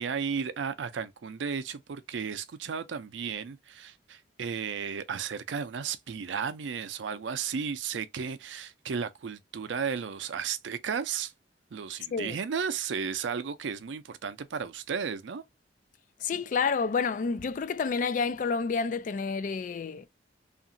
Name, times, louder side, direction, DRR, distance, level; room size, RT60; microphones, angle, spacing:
voice 1, 0.0-11.3 11.7-15.4, right 6 dB, 85° right, 0.4 m, -34 dB
voice 2, 16.2-20.1, left 5 dB, 45° left, 0.3 m, -29 dB
2.8 x 2.5 x 2.5 m
head